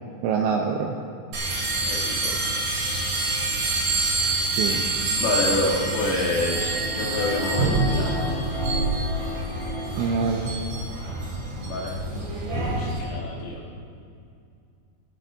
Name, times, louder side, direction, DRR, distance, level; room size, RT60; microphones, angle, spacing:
voice 1, 0.2-0.9 4.5-4.8 10.0-10.5, right 6 dB, 80° right, 2 dB, 2.6 m, -25 dB
sound 1, 1.3-13.0, right 2 dB, 50° right, 4.6 m, -27 dB
voice 2, 1.9-2.4 4.7-4.8 5.2-8.4 11.0-11.3 11.6-12.0 12.8-13.6, left 2 dB, 80° left, -6 dB, 5.3 m, -28 dB
sound 2, 6.1-10.8 11.2-11.3, left 3 dB, 35° left, 1.3 m, -35 dB
19.0 x 15.0 x 2.6 m, 2.4 s
omnidirectional pair, 5.8 m